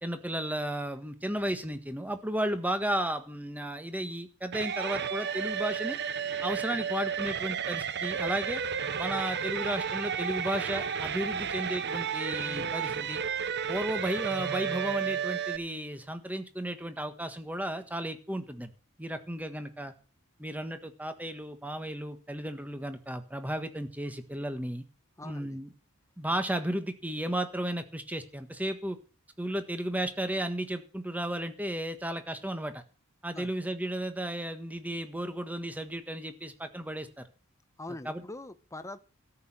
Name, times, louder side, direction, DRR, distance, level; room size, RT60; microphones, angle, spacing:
voice 1, 0.0-6.0 6.4-8.6 9.0-13.2 13.7-18.7 19.0-19.9 20.4-24.8 25.2-25.7 26.2-29.0 29.4-32.8 33.2-37.2 38.0-38.2, right 1 dB, 5° right, 9 dB, 1.5 m, -34 dB
sound 1, 4.5-15.6, right 7 dB, 50° right, 0.9 m, -32 dB
voice 2, 25.2-25.6 33.3-33.5 37.8-39.0, left 2 dB, 15° left, 11 dB, 1.0 m, -43 dB
13.5 x 6.6 x 8.9 m, 0.36 s
head